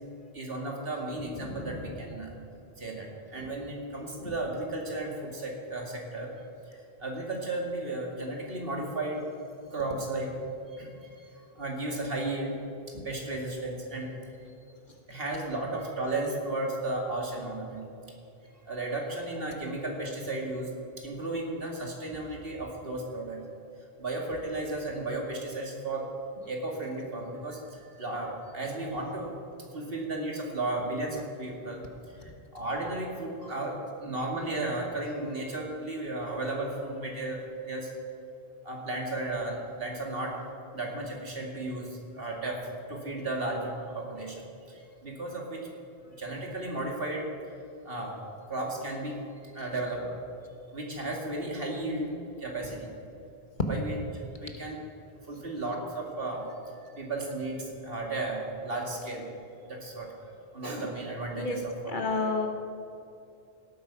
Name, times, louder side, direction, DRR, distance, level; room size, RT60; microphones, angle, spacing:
voice 1, 0.3-2.3 2.8-6.3 6.7-9.3 9.7-10.3 10.7-12.6 13.0-14.2 15.1-17.8 18.7-23.4 24.0-26.0 26.5-29.3 29.6-31.9 32.1-37.9 38.6-40.4 40.7-45.7 46.2-47.3 47.8-48.2 48.5-49.2 49.4-50.2 50.7-52.9 53.7-54.8 55.3-56.5 57.0-59.3 59.7-60.1 60.5-61.7 62.2-62.3, right 2 dB, 65° right, -1 dB, 2.4 m, -34 dB
voice 2, 1.4-1.8 4.2-4.3 12.9-13.1 61.4-61.6 61.9-62.5, left 3 dB, 55° left, 3 dB, 1.5 m, -31 dB
17.5 x 8.8 x 5.8 m, 2.7 s
omnidirectional pair, 1.0 m